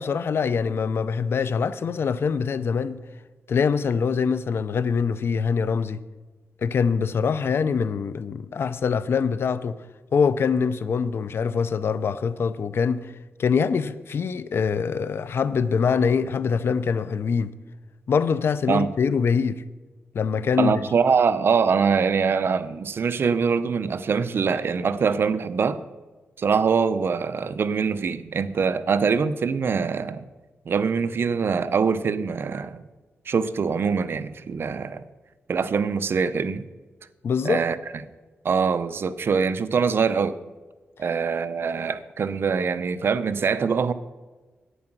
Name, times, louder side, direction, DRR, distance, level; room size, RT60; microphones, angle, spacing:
voice 1, 0.0-3.0 3.5-6.0 6.6-9.8 10.1-13.1 13.4-17.5 18.1-19.6 20.1-20.7 37.2-37.6, left 6 dB, 65° left, 0.6 m, -24 dB
voice 2, 20.6-25.8 26.4-30.3 30.7-32.8 33.3-35.0 35.5-36.6 37.4-37.8 38.4-40.4 41.0-43.9, right 5 dB, 60° right, 0.6 m, -23 dB
11.0 x 8.7 x 6.0 m
cardioid pair, 90°, 4 cm